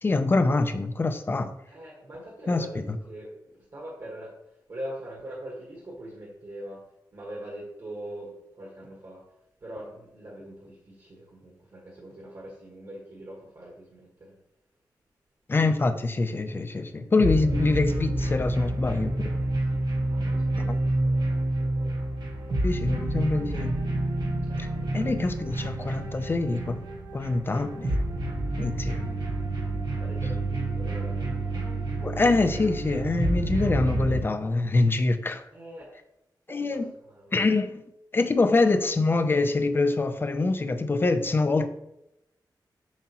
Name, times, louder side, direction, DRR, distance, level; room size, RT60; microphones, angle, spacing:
voice 1, 0.0-1.5 2.5-3.0 15.5-19.3 20.6-20.8 22.6-23.8 24.6-24.7 24.9-26.8 27.1-28.0 28.6-29.1 32.0-35.4 36.5-36.9 37.3-37.7 38.1-41.7, left 3 dB, 30° left, 9 dB, 0.5 m, -25 dB
voice 2, 1.7-6.8 7.1-9.3 9.6-14.4 16.7-16.8 19.5-22.0 24.4-25.1 29.9-31.5 35.5-36.0 36.5-37.4 38.2-38.3, right 1 dB, 45° right, -3 dB, 1.4 m, -43 dB
sound 1, 17.2-34.2, right 1 dB, 70° right, 1.2 m, -28 dB
7.2 x 5.6 x 2.9 m, 0.85 s
wide cardioid pair, 165°, 8 cm